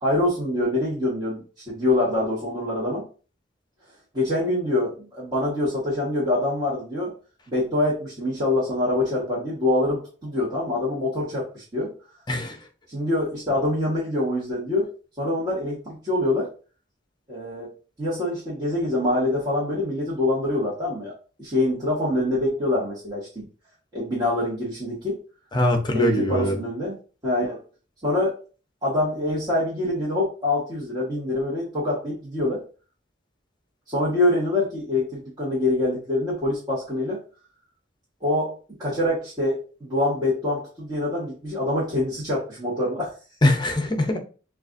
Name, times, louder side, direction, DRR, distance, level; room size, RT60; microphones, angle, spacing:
voice 1, 0.0-3.0 4.1-7.1 7.5-11.9 12.9-14.9 15.2-16.5 17.3-17.7 18.0-21.1 21.4-23.5 23.9-25.1 25.9-26.9 27.2-27.6 28.0-28.3 28.8-32.6 33.9-37.2 38.2-38.5 38.8-43.1, left 1 dB, 20° right, -8 dB, 1.3 m, -25 dB
voice 2, 12.3-12.6 25.5-26.5 43.4-44.2, left 1 dB, 25° left, 4 dB, 0.7 m, -22 dB
6.7 x 2.4 x 2.5 m, 0.37 s
head